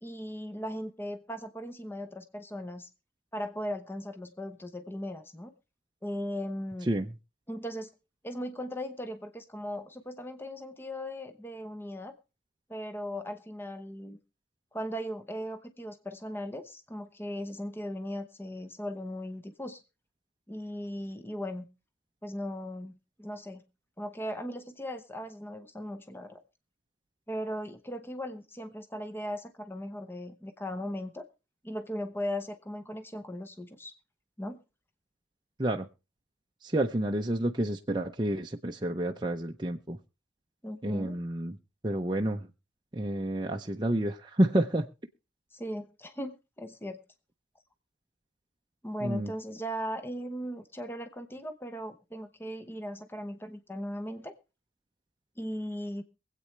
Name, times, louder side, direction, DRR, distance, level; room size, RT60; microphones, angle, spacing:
voice 1, 0.0-2.9 3.3-5.5 6.0-6.9 7.5-7.9 8.2-12.1 12.7-14.2 14.7-19.8 20.5-21.7 22.2-22.9 23.2-23.6 24.0-26.4 27.3-31.3 31.6-33.9 34.4-34.6 40.6-41.2 45.5-47.0 48.8-54.3 55.4-56.0, equal, 10° left, 8 dB, 0.9 m, -38 dB
voice 2, 36.6-40.0 40.8-41.6 41.8-42.5 42.9-44.9 49.0-49.3, right 1 dB, 25° right, 2 dB, 0.6 m, -29 dB
23.0 x 8.5 x 3.2 m, 0.30 s
head